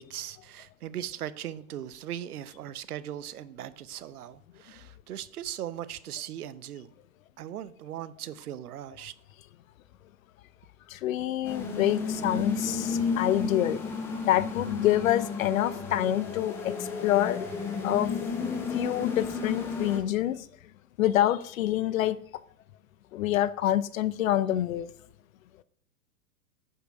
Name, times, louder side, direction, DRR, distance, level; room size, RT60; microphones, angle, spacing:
voice 1, 0.0-6.9 7.4-9.1, right 11 dB, 75° right, 0.9 m, -39 dB
voice 2, 10.9-13.8 14.2-16.7 17.0-17.4 17.8-18.1 18.7-20.5 21.0-22.2 23.1-24.9, left 13 dB, 60° left, 0.7 m, -26 dB
sound 1, 11.4-20.0, left 5 dB, 5° left, 0.3 m, -32 dB
9.6 x 5.7 x 5.8 m
hypercardioid pair, 115°, 46 cm